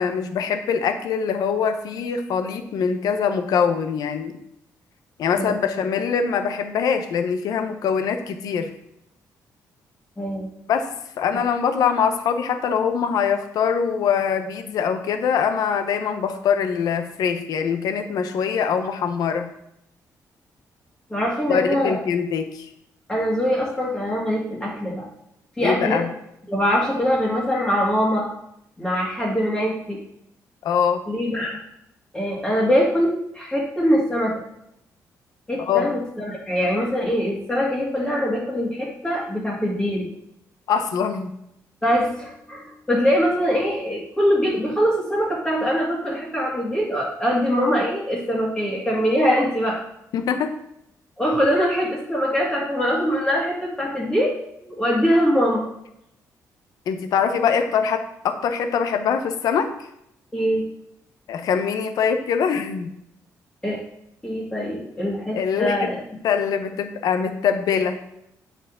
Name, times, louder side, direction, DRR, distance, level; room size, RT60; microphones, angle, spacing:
voice 1, 0.0-4.3 5.2-8.7 10.7-10.9 11.2-19.5 21.5-22.7 25.6-26.1 30.6-31.0 35.6-35.9 40.7-41.3 50.1-50.5 56.9-59.7 61.3-62.9 65.3-65.9 66.2-68.0, left 7 dB, 75° left, 7 dB, 0.8 m, -23 dB
voice 2, 10.2-10.5 21.1-22.0 23.1-25.1 25.6-26.0 26.5-28.3 28.8-30.0 31.1-31.6 32.1-34.3 35.5-40.1 41.8-49.8 51.2-54.3 54.7-55.6 60.3-60.6 63.6-63.8 64.2-66.0, equal, 10° left, -5 dB, 1.8 m, -23 dB
8.9 x 5.0 x 3.7 m, 0.78 s
cardioid pair, 140°, 7 cm